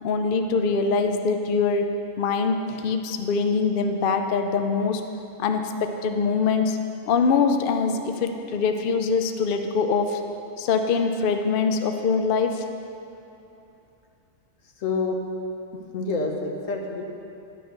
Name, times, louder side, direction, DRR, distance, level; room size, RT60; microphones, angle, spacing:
voice 1, 0.0-1.9 2.2-5.0 5.4-6.8 7.1-10.2 10.6-12.6, left 5 dB, 55° left, 5 dB, 0.6 m, -23 dB
voice 2, 14.8-15.2 15.9-17.0, left 3 dB, 80° left, 2 dB, 1.4 m, -27 dB
10.5 x 5.6 x 6.5 m, 2.8 s
omnidirectional pair, 1.3 m